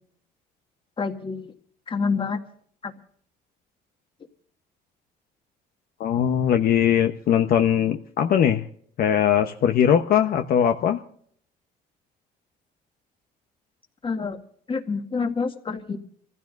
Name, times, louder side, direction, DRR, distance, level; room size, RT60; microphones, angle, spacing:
voice 1, 1.0-1.5 1.9-2.4 2.8-2.9 14.0-14.4 14.7-16.0, left 4 dB, 30° left, 6 dB, 1.9 m, -27 dB
voice 2, 6.0-8.6 9.0-11.0, left 9 dB, 60° left, 6 dB, 1.0 m, -20 dB
27.5 x 15.5 x 2.6 m, 0.62 s
cardioid pair, 110°, 17 cm